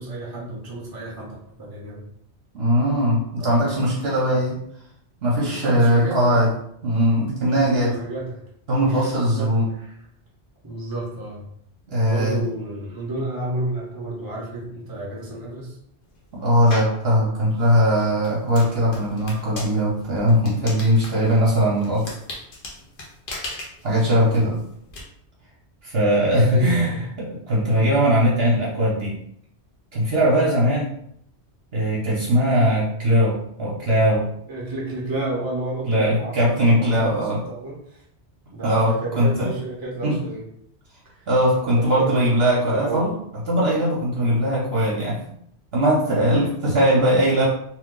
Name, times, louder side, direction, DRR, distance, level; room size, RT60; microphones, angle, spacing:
voice 1, 0.0-2.0 3.4-3.7 4.1-4.4 5.4-6.4 7.5-8.5 8.8-9.9 10.6-11.5 12.1-15.8 26.4-27.1 34.5-36.3 36.6-38.0 38.5-40.4 41.1-41.3 41.6-42.1 42.6-43.0 46.3-46.5, right 2 dB, 25° right, -5 dB, 0.7 m, -31 dB
voice 2, 2.5-4.6 5.2-6.5 6.8-8.0 8.7-9.7 11.9-12.4 16.3-22.1 23.8-24.6 25.8-29.2 29.9-30.9 31.7-34.3 35.9-37.4 38.6-39.5 40.0-40.2 41.3-43.1 43.5-45.2 45.7-47.5, equal, 65° right, -5 dB, 1.0 m, -20 dB
sound 1, 16.7-17.0 17.6-25.0, left 2 dB, 55° left, 0.9 m, -37 dB
2.9 x 2.2 x 3.6 m, 0.71 s
omnidirectional pair, 1.2 m